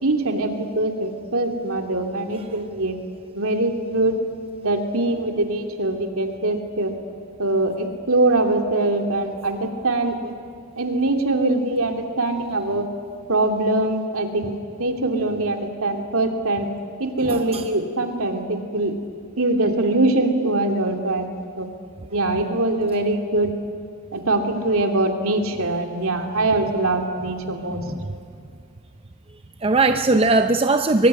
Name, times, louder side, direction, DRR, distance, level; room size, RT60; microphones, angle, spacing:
voice 1, 0.0-2.9 3.4-4.1 4.6-6.9 7.4-10.3 10.8-12.8 13.3-14.5 14.8-16.7 17.0-18.9 19.4-21.2 21.6-21.7 22.1-23.5 24.1-27.8, right 2 dB, 65° right, 4 dB, 2.9 m, -22 dB
voice 2, 17.2-17.7 27.6-28.1 29.6-31.1, right 3 dB, 25° right, 7 dB, 0.6 m, -20 dB
24.5 x 23.0 x 9.8 m, 2.3 s
head